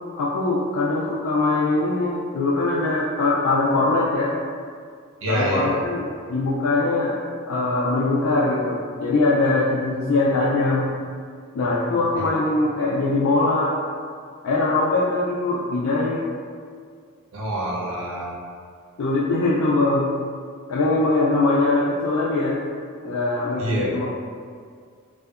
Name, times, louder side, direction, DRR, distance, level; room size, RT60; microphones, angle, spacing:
voice 1, 0.2-4.3 5.3-7.2 7.5-10.9 11.5-13.8 14.4-16.2 19.0-20.1 20.7-22.6 23.0-24.1, left 2 dB, 85° left, -6 dB, 0.3 m, -22 dB
voice 2, 5.2-5.8 12.2-12.3 17.3-18.4 23.6-23.9, right 1 dB, 75° right, -4 dB, 0.6 m, -26 dB
2.6 x 2.1 x 2.3 m, 2.1 s
head